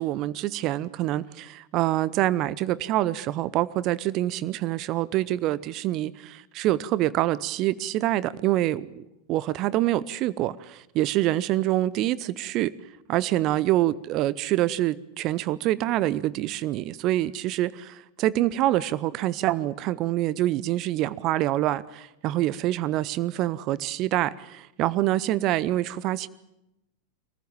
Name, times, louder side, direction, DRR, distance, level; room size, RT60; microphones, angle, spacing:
voice 1, 0.0-12.8 13.1-26.3, right 15 dB, 40° right, 0.8 m, -26 dB
24.5 x 15.0 x 8.9 m
figure-of-eight pair, 90°, 0 cm